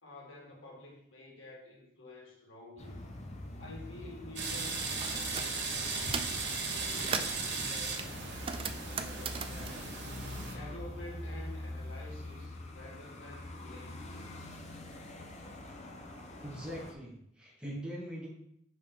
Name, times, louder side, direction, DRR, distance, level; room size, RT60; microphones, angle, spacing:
voice 1, 0.0-3.1 3.6-6.2 6.6-10.0 10.5-14.6, left 1 dB, 85° left, -2 dB, 1.7 m, -50 dB
sound 1, 2.8-16.9, left 1 dB, 35° left, 0.7 m, -44 dB
sound 2, 4.4-10.5, right 4 dB, 60° right, 1.2 m, -37 dB
sound 3, 5.0-5.5 5.9-6.4 6.8-7.4 8.0-10.9 11.2-12.3, right 5 dB, 30° right, 0.3 m, -39 dB
voice 2, 16.4-18.3, equal, 5° right, -6 dB, 1.8 m, -42 dB
5.4 x 5.1 x 3.9 m, 0.74 s
head